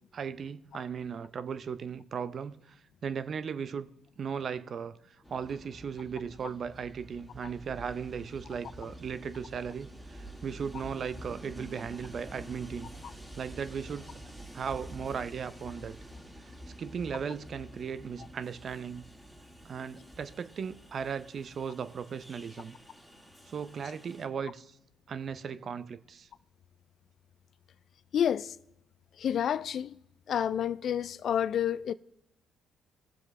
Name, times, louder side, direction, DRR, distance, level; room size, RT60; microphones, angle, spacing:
voice 1, 0.1-3.9 4.2-12.9 13.4-14.2 14.5-15.9 16.4-19.0 19.6-22.8 23.5-24.8 25.1-26.3, right 6 dB, 55° right, 0.6 m, -37 dB
Train, 5.2-24.3, right 1 dB, 5° right, 2.7 m, -48 dB
voice 2, 28.1-28.6 29.2-29.9 30.3-31.9, left 9 dB, 60° left, 0.3 m, -29 dB
19.5 x 7.5 x 3.2 m
hypercardioid pair, 55°, 0 cm